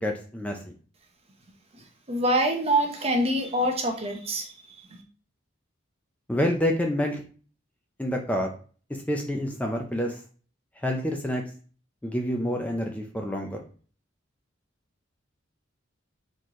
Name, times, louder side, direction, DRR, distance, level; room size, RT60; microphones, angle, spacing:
voice 1, 0.0-0.6 6.3-7.2 8.0-8.5 9.1-10.2 10.8-11.4 12.0-13.6, equal, 5° left, 2 dB, 0.5 m, -27 dB
voice 2, 1.7-5.0, right 1 dB, 30° right, 3 dB, 0.8 m, -26 dB
4.3 x 3.1 x 3.7 m, 0.40 s
head